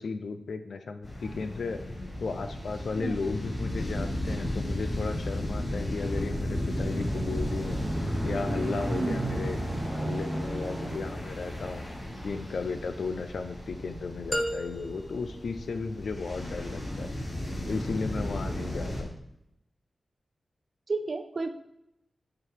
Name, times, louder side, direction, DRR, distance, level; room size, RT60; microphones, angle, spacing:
voice 1, 0.0-1.8 2.2-7.8 8.2-11.8 12.2-17.1 17.7-19.2, left 4 dB, 75° left, 7 dB, 0.6 m, -35 dB
sound 1, 1.0-19.0, left 1 dB, 30° left, 3.0 m, -35 dB
sound 2, 6.0-14.4 15.0-15.1, right 1 dB, 20° right, 1.1 m, -36 dB
voice 2, 8.9-9.2 20.9-21.5, right 3 dB, 45° right, 9 dB, 0.6 m, -31 dB
sound 3, 14.3-16.4, equal, 10° left, 0.6 m, -35 dB
8.5 x 3.9 x 4.6 m, 0.81 s
wide cardioid pair, 150°, 0 cm